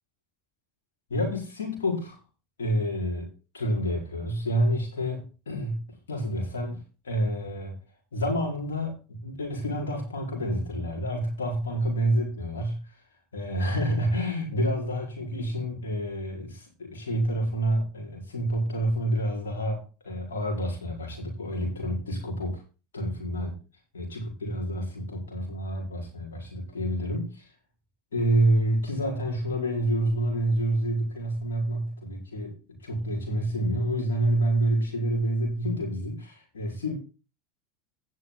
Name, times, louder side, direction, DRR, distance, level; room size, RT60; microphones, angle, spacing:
voice 1, 1.1-2.2 2.6-3.3 3.5-7.7 8.1-13.0 13.3-22.6 22.9-23.6 23.9-27.5 28.1-36.9, right 1 dB, 75° left, 4.8 m, -28 dB
17.5 x 6.4 x 3.9 m
figure-of-eight pair, 75°, 0 cm